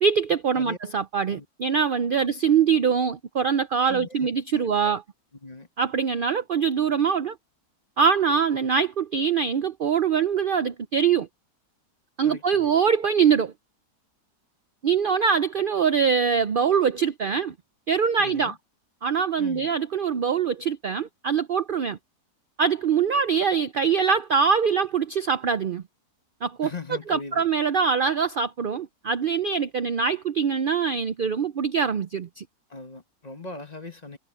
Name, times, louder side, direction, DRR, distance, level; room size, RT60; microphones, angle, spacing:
voice 1, 0.0-5.0 5.8-7.3 8.0-11.3 12.2-13.5 14.8-17.5 17.9-18.5 19.0-22.0 22.6-25.8 26.4-26.7 27.1-32.4, right 6 dB, 70° right, 0.5 m, -23 dB
voice 2, 3.8-4.3 4.6-5.0 5.4-5.7 12.2-12.7 18.2-18.6 19.4-19.7 26.6-27.4 32.7-34.2, left 4 dB, 30° left, 1.1 m, -40 dB
omnidirectional pair, 1.7 m